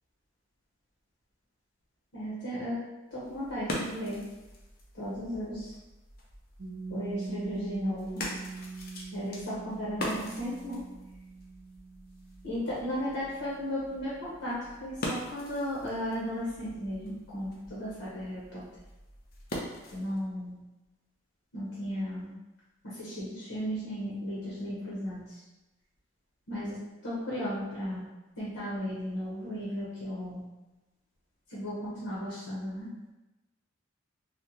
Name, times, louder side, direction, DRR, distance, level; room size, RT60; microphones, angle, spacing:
voice 1, 2.1-2.8 3.1-4.2 4.9-5.7 6.9-8.2 9.1-10.8 12.4-18.6 19.9-20.6 21.5-22.3 22.8-25.4 26.5-28.0 28.4-30.4 31.5-32.9, equal, 85° left, -8 dB, 0.9 m, -35 dB
sound 1, 3.1-20.2, left 1 dB, 45° left, 0.5 m, -43 dB
Piano, 6.6-13.9, right 4 dB, 60° right, 0.6 m, -43 dB
3.4 x 2.1 x 2.8 m, 1.1 s
head